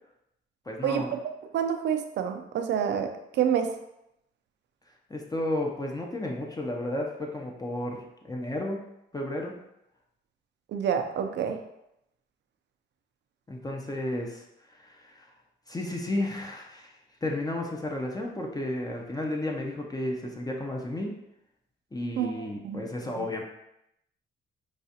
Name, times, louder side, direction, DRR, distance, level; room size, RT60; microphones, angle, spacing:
voice 1, 0.7-1.1 5.1-8.8 9.1-9.6 13.5-15.3 15.7-21.2 21.9-23.4, left 1 dB, 20° left, 0 dB, 0.6 m, -33 dB
voice 2, 1.5-3.7 10.7-11.6 22.2-22.9 23.2-23.3, right 8 dB, 60° right, 6 dB, 0.5 m, -28 dB
4.7 x 2.4 x 2.8 m, 0.82 s
cardioid pair, 90°, 20 cm